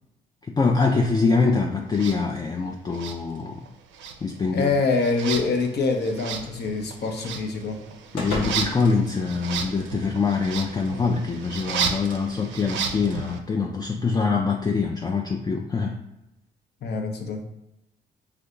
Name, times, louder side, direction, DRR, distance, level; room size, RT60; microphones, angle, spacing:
voice 1, 0.5-3.6 4.2-4.7 8.1-15.9, left 4 dB, 20° left, 2 dB, 0.4 m, -24 dB
sound 1, 1.9-2.2 2.9-3.7 3.9-13.4, right 6 dB, 65° right, 0.5 m, -33 dB
voice 2, 4.5-7.8 16.8-17.4, left 4 dB, 50° left, 4 dB, 0.7 m, -25 dB
sound 2, 5.6-10.0, left 2 dB, 90° left, 0.6 m, -38 dB
2.6 x 2.2 x 3.7 m, 0.91 s
hypercardioid pair, 50°, 21 cm